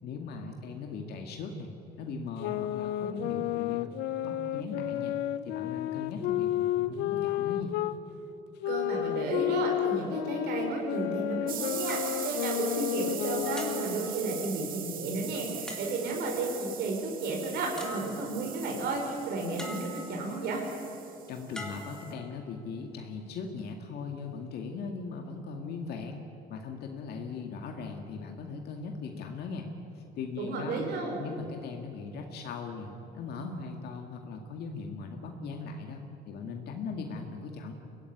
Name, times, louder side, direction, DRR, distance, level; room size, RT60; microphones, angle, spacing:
voice 1, 0.0-1.7 2.0-3.9 4.2-5.2 5.4-7.7 21.3-30.9 31.2-37.7, left 4 dB, 70° left, 3 dB, 2.2 m, -39 dB
sound 1, 2.4-8.0 8.6-14.1, left 13 dB, 85° left, 0.8 m, -31 dB
voice 2, 8.7-20.6 30.4-31.2, right 3 dB, 75° right, 0 dB, 5.4 m, -33 dB
sound 2, 11.5-22.1, right 9 dB, 55° right, 2.2 m, -41 dB
sound 3, 11.9-13.1 13.6-14.7 15.7-16.4 17.4-17.5 17.8-18.6 19.6-20.4 21.5-22.7 23.4-23.6, left 1 dB, 5° left, 3.7 m, -44 dB
23.5 x 17.0 x 9.9 m, 2.9 s
cardioid pair, 110°, 17 cm